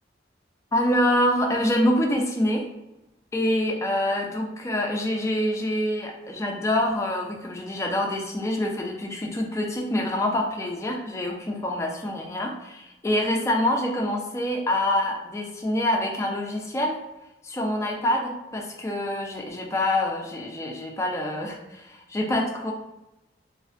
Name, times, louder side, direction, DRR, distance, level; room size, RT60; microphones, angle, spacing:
voice 1, 0.7-2.7 3.3-17.0 17.4-22.7, left 1 dB, 15° left, 0 dB, 0.3 m, -26 dB
2.4 x 2.1 x 2.5 m, 0.95 s
head